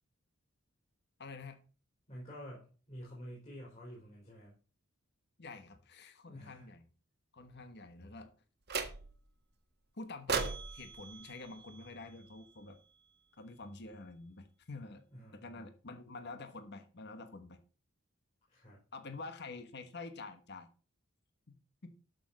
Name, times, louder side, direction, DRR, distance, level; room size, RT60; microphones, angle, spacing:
voice 1, 1.2-1.6 5.4-6.9 7.3-8.3 9.9-12.8 13.4-15.0 15.3-17.6 18.9-20.7 21.5-21.9, left 3 dB, 50° left, 8 dB, 1.3 m, -48 dB
voice 2, 2.1-4.5 6.2-6.7 15.1-15.6 18.5-18.8, equal, 30° left, -5 dB, 4.3 m, -49 dB
sound 1, 8.7-9.3 10.3-12.5, right 5 dB, 50° right, 1.4 m, -39 dB
12.5 x 6.6 x 4.1 m, 0.37 s
head